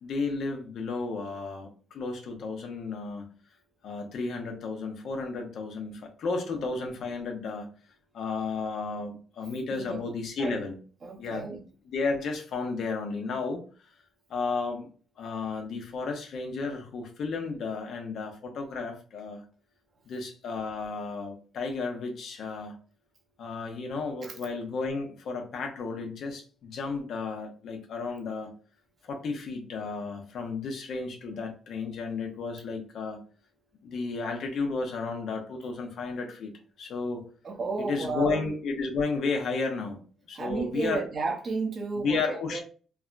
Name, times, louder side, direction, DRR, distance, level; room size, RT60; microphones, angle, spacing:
voice 1, 0.0-3.2 3.8-7.7 8.1-10.8 11.2-11.5 11.9-13.6 14.3-14.9 15.2-19.4 20.1-22.7 23.4-28.6 29.0-33.2 33.8-36.5 36.8-37.3 37.9-40.0 40.3-41.0 42.0-42.6, left 4 dB, 65° left, 0.8 m, -33 dB
voice 2, 11.0-11.6 24.2-24.4 37.4-38.4 40.3-42.6, right 3 dB, 45° right, 0.8 m, -32 dB
3.4 x 2.2 x 2.5 m
cardioid pair, 90°, 0 cm